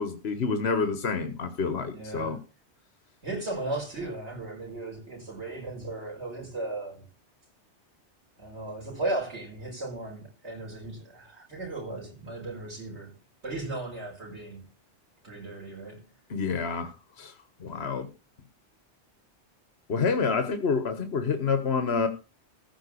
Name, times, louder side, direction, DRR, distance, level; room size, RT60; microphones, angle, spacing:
voice 1, 0.0-2.4 16.3-17.3 17.6-18.1 19.9-22.1, left 5 dB, 65° left, 1.4 m, -28 dB
voice 2, 1.9-2.3 3.2-7.0 8.4-13.1 13.4-14.6 15.2-16.0, right 2 dB, 75° right, 5.4 m, -36 dB
15.0 x 5.0 x 8.3 m
omnidirectional pair, 1.2 m